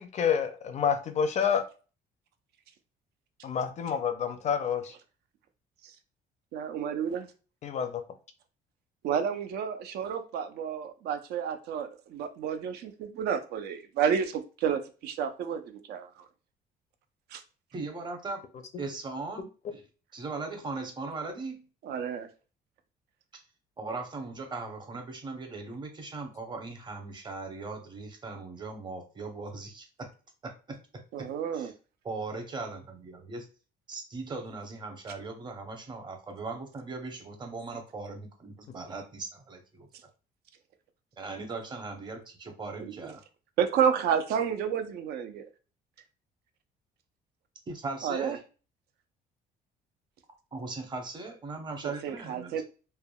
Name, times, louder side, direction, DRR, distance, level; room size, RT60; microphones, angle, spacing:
voice 1, 0.0-1.6 3.4-4.9 7.6-8.0, left 7 dB, 45° left, 0.4 m, -28 dB
voice 2, 6.5-7.3 9.0-16.3 17.3-17.4 21.8-22.3 31.1-31.7 42.8-43.1 43.6-45.4 48.0-48.4 52.0-52.6, right 7 dB, 75° right, 0.5 m, -30 dB
voice 3, 17.7-18.4 18.8-19.8 20.1-21.6 23.8-30.1 30.4-31.7 32.0-33.5 33.9-39.9 41.2-43.2 47.7-48.4 50.5-52.6, right 3 dB, 25° right, 0.7 m, -39 dB
3.3 x 2.1 x 2.2 m
cardioid pair, 110°, 17 cm